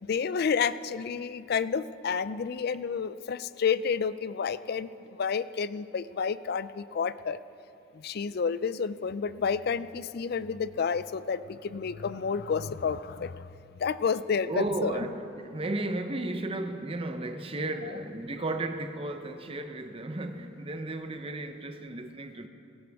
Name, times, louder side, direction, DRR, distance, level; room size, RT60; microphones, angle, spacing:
voice 1, 0.0-4.9 5.2-7.4 7.9-13.5 13.8-15.0, left 6 dB, 55° left, 0.4 m, -30 dB
voice 2, 14.5-22.5, right 2 dB, 30° right, 0.8 m, -34 dB
17.5 x 15.5 x 3.6 m
head